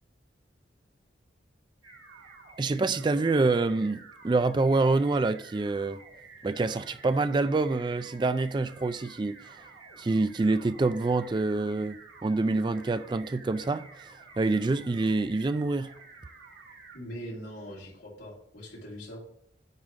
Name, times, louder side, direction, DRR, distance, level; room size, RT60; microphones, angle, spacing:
sound 1, 1.8-17.0, right 4 dB, 80° right, 2.1 m, -51 dB
voice 1, 2.6-6.0 6.4-9.6 10.0-15.9, right 3 dB, 25° right, 0.3 m, -26 dB
voice 2, 16.9-19.2, equal, 75° left, 3.6 m, -41 dB
9.5 x 3.7 x 6.3 m
head